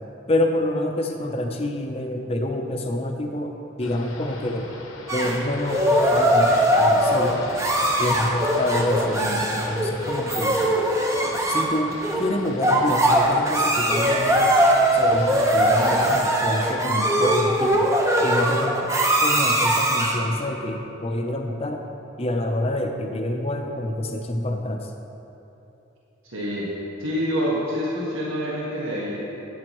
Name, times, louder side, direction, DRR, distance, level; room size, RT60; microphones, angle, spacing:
voice 1, 0.3-3.5 3.8-4.7 5.1-7.4 8.0-10.6 11.5-14.6 14.9-17.9 18.2-18.8 19.2-21.8 22.2-24.8, left 1 dB, 30° left, 3 dB, 0.6 m, -27 dB
sound 1, 3.8-16.2, left 2 dB, 90° left, 1.1 m, -39 dB
sound 2, 5.1-20.3, right 1 dB, 15° right, 0.6 m, -21 dB
voice 2, 26.2-26.7 27.0-29.2, equal, 85° right, -6 dB, 1.5 m, -26 dB
12.0 x 8.7 x 3.1 m, 3.0 s
head